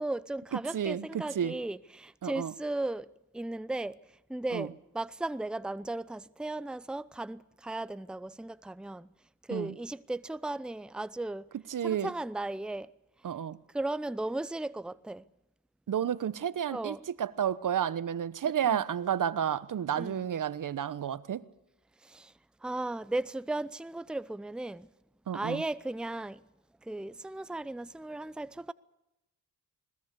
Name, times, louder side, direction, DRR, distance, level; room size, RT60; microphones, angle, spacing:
voice 1, 0.0-3.1 3.3-4.0 4.3-9.1 9.5-11.5 11.8-12.9 13.7-15.2 16.7-17.0 18.6-18.8 19.9-20.2 22.0-22.3 22.6-24.9 25.3-26.4 26.8-28.7, right 2 dB, ahead, 0.7 m, -36 dB
voice 2, 0.5-1.5 2.2-2.5 4.5-4.7 9.5-9.8 11.5-12.1 13.2-13.6 15.9-21.4 25.3-25.6, right 9 dB, 60° right, 1.0 m, -31 dB
20.5 x 20.5 x 8.4 m
supercardioid pair, 45°, 36 cm